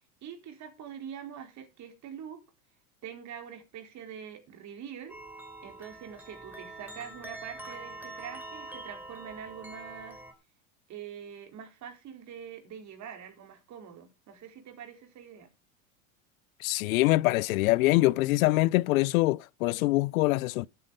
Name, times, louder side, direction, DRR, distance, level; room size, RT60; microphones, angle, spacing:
voice 1, 0.2-2.4 3.0-5.2 5.6-10.2 10.9-15.5, right 8 dB, 40° right, 4.6 m, -44 dB
sound 1, 5.1-10.3, right 2 dB, 5° right, 3.1 m, -44 dB
voice 2, 16.6-20.7, left 19 dB, 75° left, 0.6 m, -24 dB
12.0 x 9.4 x 5.3 m
supercardioid pair, 110°, 42 cm